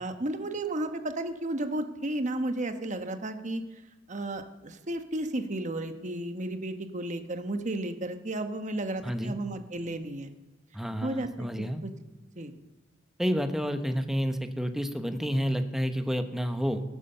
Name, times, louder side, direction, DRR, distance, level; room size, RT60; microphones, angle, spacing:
voice 1, 0.0-3.6 4.1-10.3 11.0-11.5 11.8-11.9 12.4-12.5, right 1 dB, 40° right, 8 dB, 1.1 m, -33 dB
voice 2, 9.0-9.3 10.7-11.8 13.2-16.8, equal, ahead, 7 dB, 0.9 m, -30 dB
18.0 x 8.5 x 6.7 m, 1.1 s
head